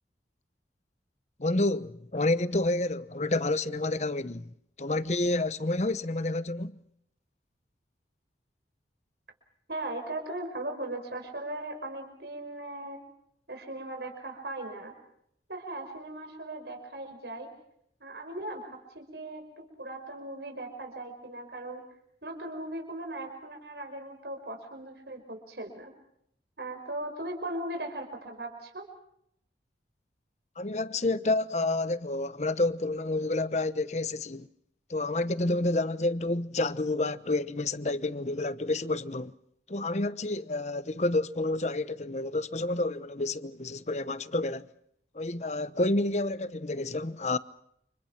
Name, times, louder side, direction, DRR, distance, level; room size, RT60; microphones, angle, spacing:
voice 1, 1.4-4.5 4.8-6.8 30.6-34.5 34.9-39.3 39.7-44.7 45.1-47.4, left 2 dB, 40° left, 0.9 m, -29 dB
voice 2, 9.7-13.0 13.5-14.9 15.5-17.5 18.0-21.8 22.2-25.9 26.6-28.9, right 1 dB, 70° right, 5.4 m, -38 dB
29.5 x 27.0 x 6.0 m
head